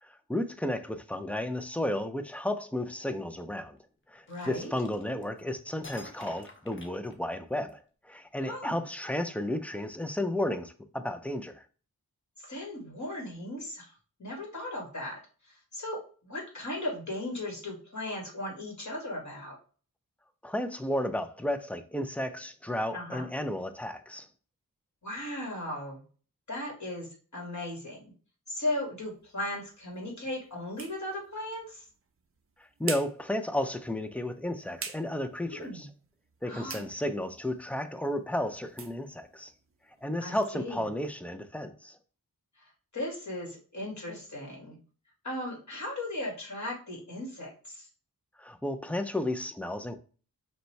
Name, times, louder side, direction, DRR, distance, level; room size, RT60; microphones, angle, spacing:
voice 1, 0.0-3.8 4.1-11.6 20.4-24.3 32.8-35.9 36.4-39.5 40.0-42.0 48.4-50.0, left 1 dB, 5° left, 0.4 m, -33 dB
voice 2, 4.3-4.7 8.5-8.8 12.4-13.9 14.2-15.1 15.7-19.6 22.9-23.3 25.0-26.0 26.5-28.0 28.5-31.8 35.5-35.9 36.5-36.9 40.2-40.8 42.9-44.8 45.2-47.9, left 1 dB, 50° left, 1.9 m, -37 dB
sound 1, 4.3-5.4 5.8-7.7, left 2 dB, 35° left, 0.8 m, -49 dB
sound 2, 29.0-40.6, right 4 dB, 40° right, 0.6 m, -47 dB
5.3 x 2.2 x 3.2 m
wide cardioid pair, 75°, 36 cm